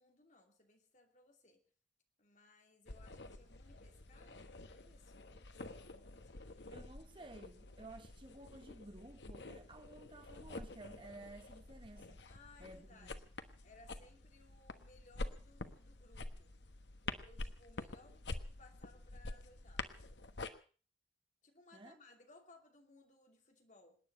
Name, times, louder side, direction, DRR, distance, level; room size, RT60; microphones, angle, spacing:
voice 1, 0.0-1.6 2.2-6.8 12.2-16.5 17.0-20.1 21.4-24.0, left 3 dB, 45° left, 2.7 m, -64 dB
sound 1, 2.9-20.5, left 2 dB, 85° left, 1.2 m, -48 dB
voice 2, 6.7-12.2 12.6-13.1 21.7-22.0, right 2 dB, 30° right, 1.2 m, -54 dB
27.0 x 9.7 x 5.4 m
head